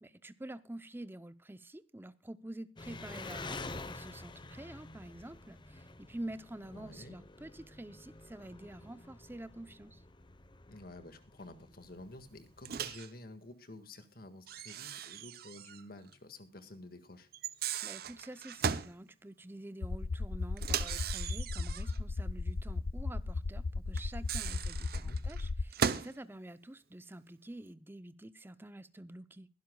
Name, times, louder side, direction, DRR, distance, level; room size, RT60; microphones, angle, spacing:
voice 1, 0.0-10.0 17.8-29.5, right 1 dB, 10° right, 0.6 m, -48 dB
Engine, 2.8-12.9, left 3 dB, 25° left, 0.9 m, -49 dB
voice 2, 6.7-7.2 10.7-17.3 24.9-25.2, left 2 dB, 55° left, 1.8 m, -51 dB
Microwave oven, 12.7-13.1 14.5-15.8 16.1-16.2 17.3-19.0 20.6-22.0 24.0-26.2, right 7 dB, 55° right, 0.7 m, -37 dB
sound 1, 19.8-25.6, left 3 dB, 90° left, 0.5 m, -36 dB
22.0 x 12.0 x 2.3 m
head